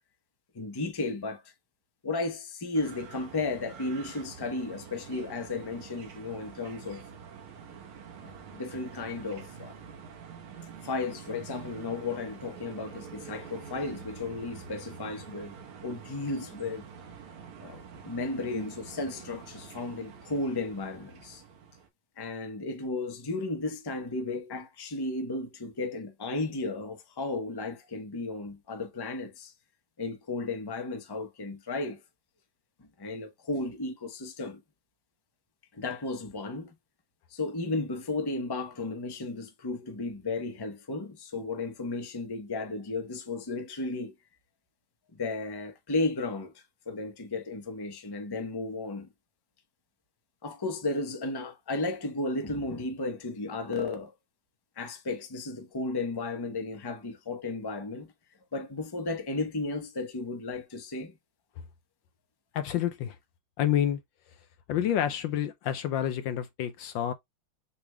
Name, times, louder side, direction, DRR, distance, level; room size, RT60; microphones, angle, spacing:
voice 1, 0.5-1.4 2.0-7.0 8.2-9.8 10.8-15.5 15.8-16.8 17.6-21.4 22.2-29.5 30.0-32.0 33.0-34.6 35.7-36.7 37.3-44.1 45.1-46.5 46.9-49.1 50.4-54.1 54.8-58.1 58.5-61.1, left 3 dB, 20° left, 0.7 m, -34 dB
sound 1, 2.7-21.9, right 6 dB, 80° right, 2.2 m, -47 dB
voice 2, 62.5-63.2 63.6-64.0 64.7-67.1, left 10 dB, 75° left, 1.2 m, -28 dB
7.0 x 3.3 x 2.3 m
omnidirectional pair, 2.3 m